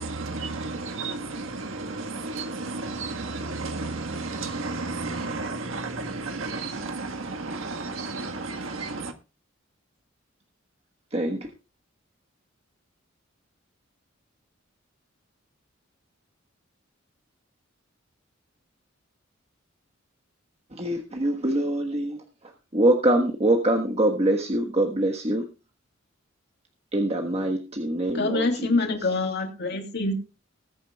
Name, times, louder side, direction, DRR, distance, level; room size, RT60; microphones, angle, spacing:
voice 1, 0.0-9.2, right 3 dB, 85° right, 1.5 m, -32 dB
voice 2, 11.1-11.5 20.7-22.2 22.7-25.5 26.9-28.4, right 1 dB, 30° right, 1.4 m, -24 dB
voice 3, 28.1-30.1, left 3 dB, 60° left, 2.9 m, -25 dB
20.5 x 9.2 x 2.3 m
head